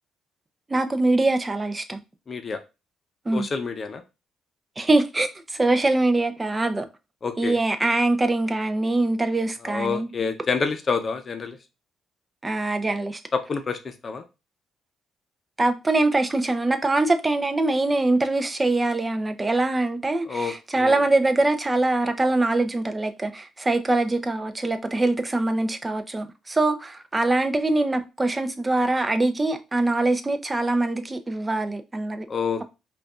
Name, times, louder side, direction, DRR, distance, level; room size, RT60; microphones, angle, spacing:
voice 1, 0.7-2.0 3.3-3.5 4.8-6.9 7.4-10.1 12.4-13.2 15.6-32.3, right 2 dB, 20° right, 0.5 m, -23 dB
voice 2, 2.3-2.6 3.3-4.0 7.2-7.5 9.6-11.6 13.3-14.2 20.3-21.0 32.3-32.6, left 5 dB, 40° left, 0.6 m, -28 dB
5.0 x 2.4 x 2.4 m
cardioid pair, 90°, 0 cm